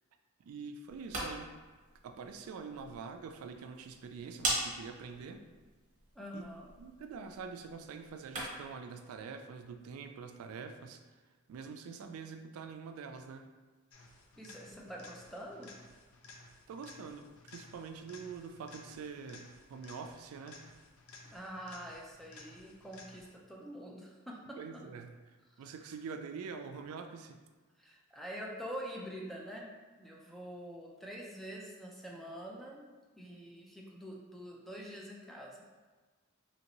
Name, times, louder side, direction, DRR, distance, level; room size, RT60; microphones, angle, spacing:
voice 1, 0.4-1.5 2.0-5.4 6.3-6.5 6.8-11.1 11.5-13.5 16.3-20.7 24.6-27.4, right 5 dB, 90° right, 8 dB, 0.3 m, -45 dB
sound 1, 0.8-8.8, right 1 dB, 35° right, 0.9 m, -42 dB
voice 2, 6.2-6.7 14.4-15.7 21.3-24.8 27.8-29.7 30.0-32.8 33.2-35.6, equal, ahead, -3 dB, 0.4 m, -45 dB
sound 2, 13.9-23.5 31.5-31.6, left 2 dB, 80° left, 0.4 m, -55 dB
3.1 x 2.6 x 2.9 m, 1.3 s
head